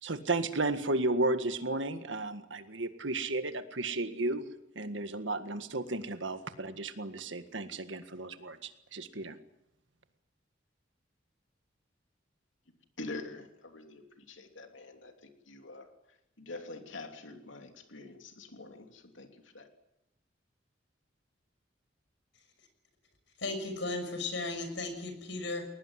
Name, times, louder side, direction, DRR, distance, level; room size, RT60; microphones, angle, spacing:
voice 1, 0.0-4.4 4.8-9.4, right 2 dB, 75° right, 9 dB, 1.8 m, -33 dB
voice 2, 12.7-19.7, left 2 dB, 85° left, 5 dB, 3.0 m, -46 dB
voice 3, 23.4-25.7, left 2 dB, 70° left, 7 dB, 6.2 m, -35 dB
21.5 x 19.5 x 9.7 m, 0.86 s
head